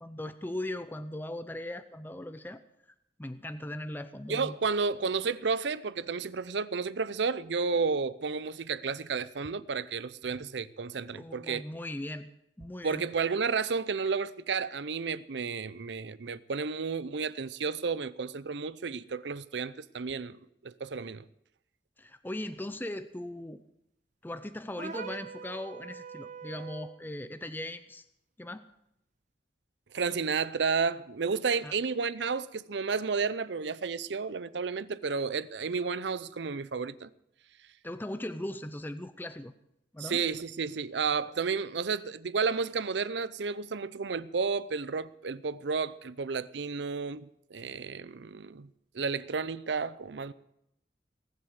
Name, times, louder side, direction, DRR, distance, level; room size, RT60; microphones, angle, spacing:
voice 1, 0.0-2.6 3.2-4.6 11.1-12.3 12.6-13.0 22.0-23.6 24.2-28.1 28.4-28.7 31.6-31.7 37.8-39.5 39.9-40.2, left 1 dB, 10° left, 0.5 m, -39 dB
voice 2, 4.3-11.6 12.8-21.2 29.9-37.1 40.0-48.7 48.9-50.3, right 5 dB, 75° right, 0.6 m, -32 dB
sound 1, 24.8-27.0, right 5 dB, 40° right, 1.0 m, -42 dB
18.5 x 7.8 x 8.1 m
head